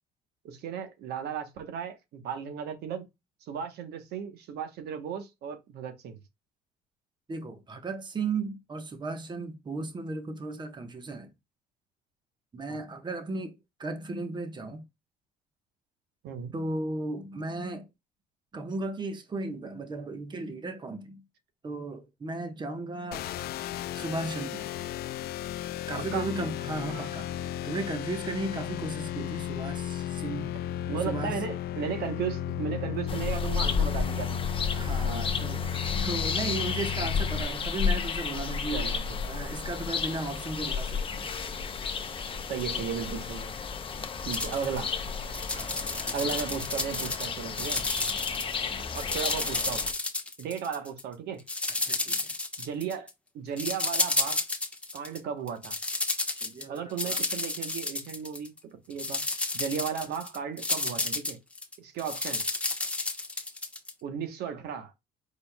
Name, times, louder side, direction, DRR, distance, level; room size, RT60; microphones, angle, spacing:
voice 1, 0.4-3.1 3.4-6.2 12.7-12.8 16.2-16.5 26.1-26.2 26.9-27.1 30.9-34.4 35.0-35.2 38.7-39.2 42.5-43.5 44.2-44.9 46.1-47.8 48.9-49.8 50.4-51.4 52.6-53.1 53.3-54.4 54.9-55.7 56.7-58.5 58.9-59.2 59.5-61.4 61.8-62.4 64.0-64.9, right 7 dB, 75° right, 1.0 m, -35 dB
voice 2, 7.3-11.3 12.5-14.8 16.5-17.9 18.5-21.2 21.6-23.2 23.9-24.7 25.9-27.3 27.6-30.6 31.0-31.4 34.7-38.9 39.2-41.3 42.7-42.9 45.5-46.3 48.6-48.9 51.8-52.3 56.4-57.2, right 2 dB, 25° right, 1.1 m, -35 dB
sound 1, 23.1-37.4, left 10 dB, 65° left, 0.4 m, -34 dB
sound 2, 33.1-49.9, left 6 dB, 30° left, 0.8 m, -32 dB
sound 3, 44.3-44.8 45.2-47.3 47.6-48.6 48.9-51.0 51.5-53.1 53.6-55.2 55.5-58.6 58.9-63.9, left 2 dB, 5° left, 1.1 m, -31 dB
5.1 x 4.4 x 2.2 m
cardioid pair, 110°, 17 cm